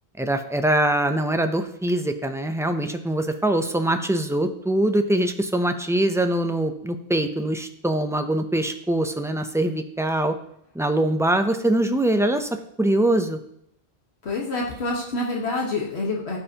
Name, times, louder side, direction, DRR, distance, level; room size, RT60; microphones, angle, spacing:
voice 1, 0.2-10.4 10.7-12.5 12.8-13.4, right 1 dB, 5° right, 7 dB, 0.4 m, -23 dB
voice 2, 14.2-16.4, left 2 dB, 80° left, -1 dB, 1.6 m, -27 dB
15.0 x 5.6 x 2.9 m, 0.75 s
omnidirectional pair, 1.1 m